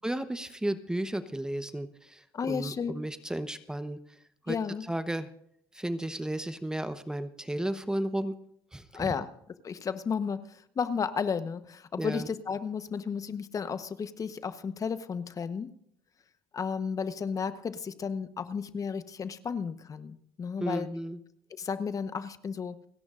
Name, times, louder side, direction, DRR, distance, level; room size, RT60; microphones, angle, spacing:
voice 1, 0.0-4.0 4.5-4.6 4.9-5.3 5.7-8.3 8.7-9.1 12.0-12.3 20.6-21.2, right 1 dB, 5° right, 10 dB, 0.9 m, -33 dB
voice 2, 2.3-2.9 4.5-4.9 8.9-9.3 9.6-15.7 16.5-20.9 21.5-22.8, left 6 dB, 35° left, 11 dB, 1.0 m, -33 dB
30.0 x 10.5 x 2.5 m, 0.70 s
cardioid pair, 110°, 10 cm